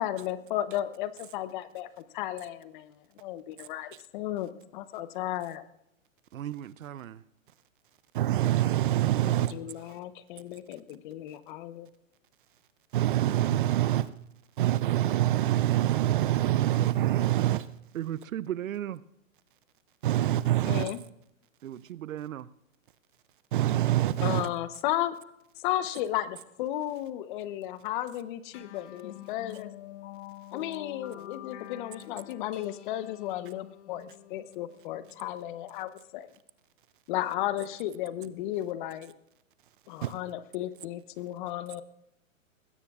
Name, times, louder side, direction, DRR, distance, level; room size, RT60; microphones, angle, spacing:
voice 1, 0.0-3.4 3.7-3.9 4.1-5.6 9.3-11.9 20.6-21.0 24.2-25.2 25.6-29.7 30.5-36.3 37.1-39.1 39.9-41.8, left 13 dB, 35° left, 0.9 m, -34 dB
voice 2, 6.3-7.2 17.9-19.0 21.6-22.5, right 11 dB, 75° right, 0.7 m, -36 dB
voice 3, 8.1-9.5 12.9-14.1 14.6-17.7 20.0-20.9 23.5-24.5 40.0-40.1, right 13 dB, 40° right, 0.5 m, -25 dB
sound 1, 28.5-35.4, left 13 dB, 55° left, 1.1 m, -47 dB
20.5 x 16.5 x 2.4 m
hypercardioid pair, 130°, 41 cm